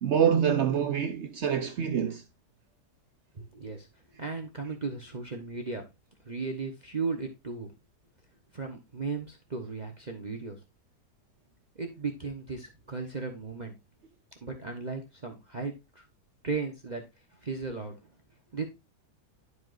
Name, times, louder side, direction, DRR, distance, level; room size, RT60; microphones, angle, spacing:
voice 1, 0.0-2.2, right 8 dB, 65° right, 0.7 m, -26 dB
voice 2, 3.3-3.9 4.1-5.8 6.2-7.7 8.5-10.6 11.8-13.7 14.4-16.1 16.4-17.0 17.3-18.0 18.5-18.6, right 4 dB, 30° right, 1.0 m, -36 dB
12.0 x 4.8 x 2.5 m
omnidirectional pair, 1.8 m